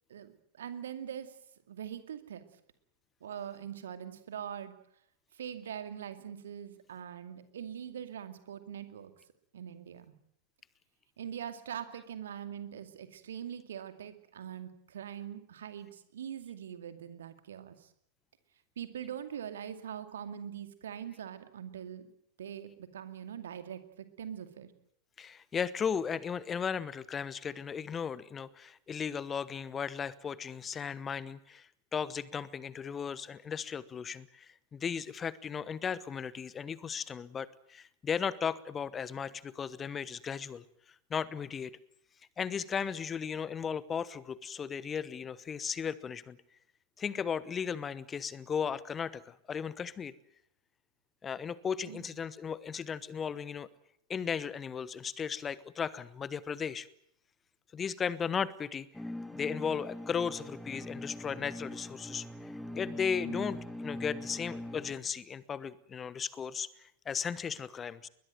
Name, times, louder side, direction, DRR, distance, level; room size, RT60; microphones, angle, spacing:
voice 1, 0.1-1.4 1.7-2.4 3.2-4.7 5.3-9.1 9.5-10.1 11.2-17.9 18.8-22.1 22.4-24.7 51.9-52.2 63.2-63.4, right 9 dB, 65° right, 10 dB, 2.3 m, -42 dB
voice 2, 25.2-40.6 41.1-41.8 42.4-46.4 47.0-50.1 51.2-53.7 54.1-56.9 57.7-58.9 59.3-62.3 62.7-68.1, left 7 dB, 20° left, 19 dB, 1.0 m, -36 dB
sound 1, 58.9-64.9, left 1 dB, 5° left, 2.1 m, -41 dB
21.5 x 21.0 x 9.2 m, 0.72 s
figure-of-eight pair, 90°, 0 cm